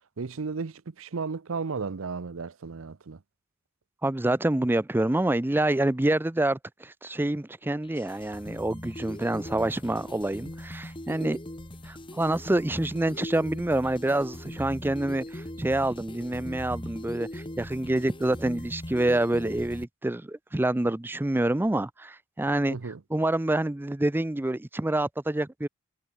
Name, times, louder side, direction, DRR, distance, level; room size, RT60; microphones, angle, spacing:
voice 1, 0.2-3.2 22.7-23.0, right 4 dB, 75° right, 0.7 m, -34 dB
voice 2, 4.0-11.4 11.9-25.7, right 1 dB, 10° right, 0.5 m, -27 dB
sound 1, 7.8-19.8, left 1 dB, 25° left, 2.8 m, -40 dB
head